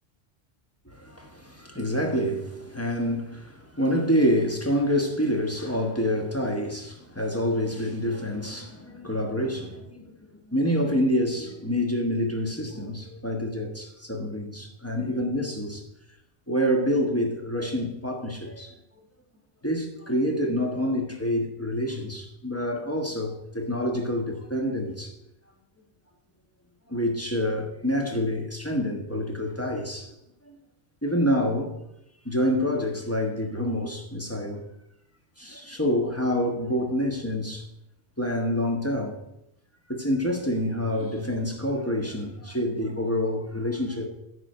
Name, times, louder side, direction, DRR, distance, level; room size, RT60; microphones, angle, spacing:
voice 1, 0.9-15.8 16.5-18.7 19.6-25.1 26.9-30.1 30.5-30.6 31.0-31.7 32.2-34.6 35.4-37.7 38.2-39.2 39.9-44.1, equal, 15° left, 1.3 m, -27 dB
9.9 x 4.9 x 7.9 m
omnidirectional pair, 1.2 m